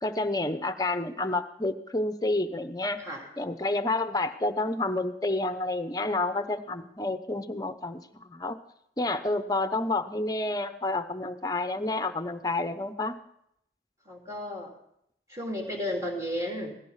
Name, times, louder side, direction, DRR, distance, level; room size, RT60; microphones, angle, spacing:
voice 1, 0.0-3.0 3.4-8.6 9.0-13.2, left 2 dB, 20° left, 10 dB, 0.8 m, -29 dB
voice 2, 14.0-14.7 15.3-16.8, left 1 dB, 15° right, 0 dB, 3.2 m, -33 dB
17.5 x 14.5 x 5.7 m, 0.75 s
head